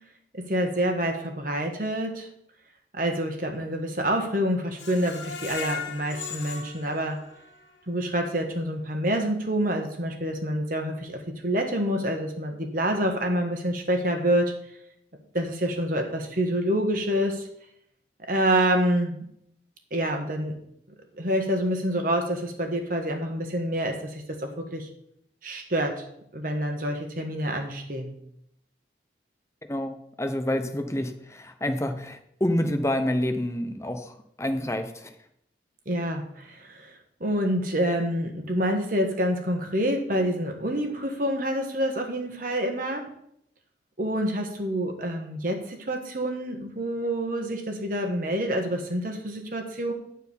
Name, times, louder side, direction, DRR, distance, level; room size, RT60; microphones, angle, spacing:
voice 1, 0.3-2.3 2.9-7.2 7.9-14.5 15.3-17.5 18.2-19.2 19.9-20.5 21.2-24.9 25.4-26.0 26.3-28.1 35.8-43.1 44.0-49.9, equal, 50° right, 4 dB, 1.5 m, -27 dB
Screech, 4.8-7.8 8.2-8.3 8.7-8.8, left 6 dB, 80° left, 1.5 m, -37 dB
voice 2, 29.7-35.1, left 1 dB, 15° left, 7 dB, 0.8 m, -28 dB
10.0 x 4.6 x 7.1 m, 0.73 s
head